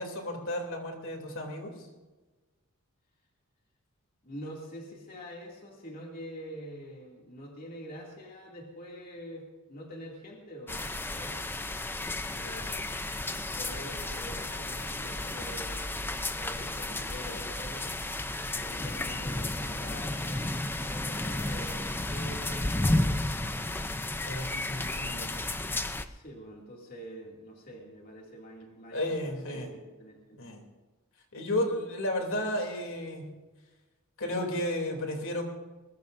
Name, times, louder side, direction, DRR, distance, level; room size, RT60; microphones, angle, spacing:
voice 1, 0.0-1.9 12.3-12.8 24.3-25.4 28.9-29.7 30.4-30.6 31.3-33.3 34.2-35.4, left 1 dB, 60° left, 2 dB, 3.1 m, -33 dB
voice 2, 4.2-11.4 13.5-16.0 16.4-17.9 18.5-23.6 26.0-30.6, equal, 40° left, -2 dB, 2.6 m, -45 dB
sound 1, 10.7-26.1, left 2 dB, 10° left, 0.6 m, -33 dB
22.0 x 21.5 x 2.7 m, 1.2 s
head